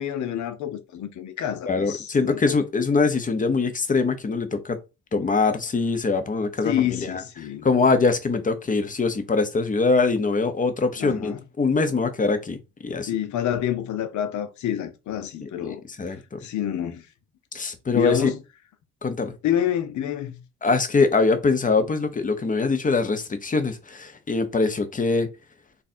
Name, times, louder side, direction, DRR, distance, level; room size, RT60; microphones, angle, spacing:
voice 1, 0.0-2.6 6.6-7.7 11.0-11.4 13.1-15.8 16.4-17.0 17.9-18.4 19.4-20.4, left 10 dB, 75° left, 0.9 m, -28 dB
voice 2, 1.7-4.8 5.1-7.2 7.6-13.1 15.4-16.4 17.5-18.3 19.0-19.3 20.6-25.3, left 4 dB, 25° left, 0.8 m, -23 dB
3.3 x 2.5 x 4.3 m
cardioid pair, 90°, 30 cm